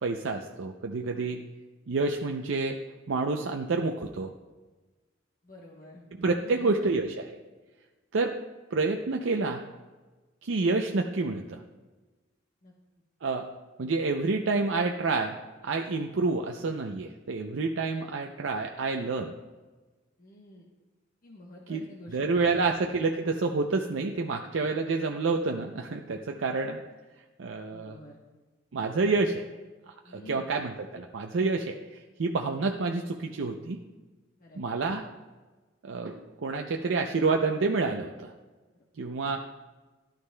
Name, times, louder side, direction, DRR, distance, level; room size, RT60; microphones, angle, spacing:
voice 1, 0.0-1.4 1.9-2.8 3.1-4.3 6.1-7.4 8.1-8.4 8.7-9.6 10.4-11.6 13.2-13.5 13.8-15.4 15.6-19.3 21.7-26.8 27.4-28.0 28.7-29.5 30.1-33.8 34.5-35.0 35.8-38.3 39.0-39.4, right 3 dB, 75° right, 3 dB, 0.5 m, -28 dB
voice 2, 5.4-6.0 6.4-6.9 12.6-12.7 20.2-20.6 21.2-22.6 27.7-28.2 30.1-30.5 34.4-34.6, left 1 dB, 45° left, -2 dB, 1.1 m, -48 dB
13.0 x 11.5 x 2.2 m, 1.2 s
head